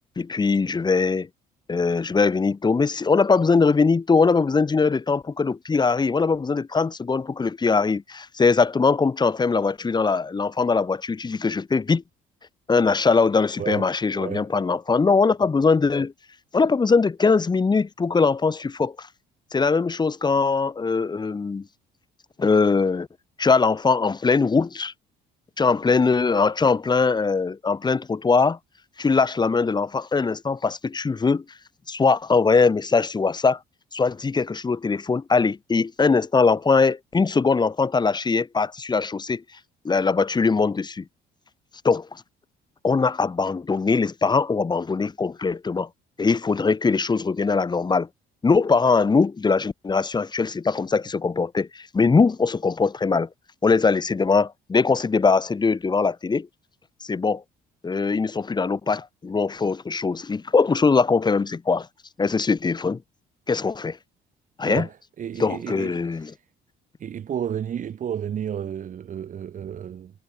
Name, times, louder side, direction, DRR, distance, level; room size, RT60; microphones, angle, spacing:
voice 1, 0.2-1.3 1.7-12.0 12.7-16.1 16.5-19.1 19.5-21.7 22.4-23.1 23.4-24.9 25.6-28.6 29.0-31.4 31.9-33.6 33.9-39.4 39.8-41.0 41.8-42.2 42.8-45.9 46.2-48.1 48.4-53.3 53.6-56.5 57.0-57.4 57.8-61.9 62.2-63.0 63.5-64.0 64.6-64.9 65.4-66.3, left 4 dB, 25° left, 7.1 m, -21 dB
voice 2, 14.1-14.5 64.7-66.4 67.0-70.1, right 9 dB, 50° right, 7.1 m, -32 dB
cardioid pair, 110°, 17 cm